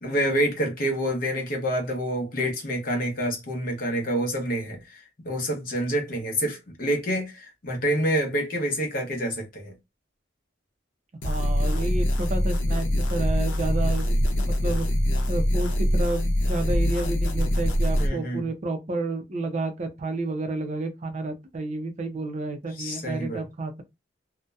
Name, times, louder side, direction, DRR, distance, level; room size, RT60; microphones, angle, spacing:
voice 1, 0.0-9.7 18.0-18.4 22.8-23.4, equal, 50° left, 0.7 m, -27 dB
sound 1, 11.2-18.1, equal, 90° left, 0.6 m, -24 dB
voice 2, 11.2-14.9 15.3-23.7, right 2 dB, 40° right, 0.4 m, -31 dB
2.6 x 2.1 x 2.2 m
head